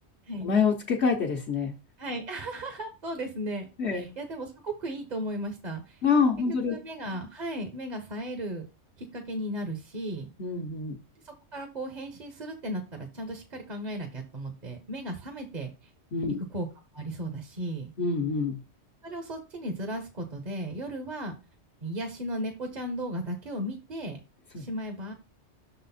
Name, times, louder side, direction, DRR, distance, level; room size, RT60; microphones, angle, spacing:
voice 1, 0.4-1.7 3.8-4.1 6.0-6.7 10.4-11.0 16.1-16.4 18.0-18.6 24.5-24.6, left 5 dB, 65° left, 1 dB, 1.2 m, -26 dB
voice 2, 2.0-6.0 6.7-8.7 9.0-10.3 11.2-15.9 16.5-16.7 16.9-17.9 19.0-21.4 21.8-24.2 24.6-25.1, right 1 dB, 40° right, 4 dB, 1.0 m, -35 dB
6.2 x 4.1 x 4.1 m, 0.28 s
omnidirectional pair, 1.2 m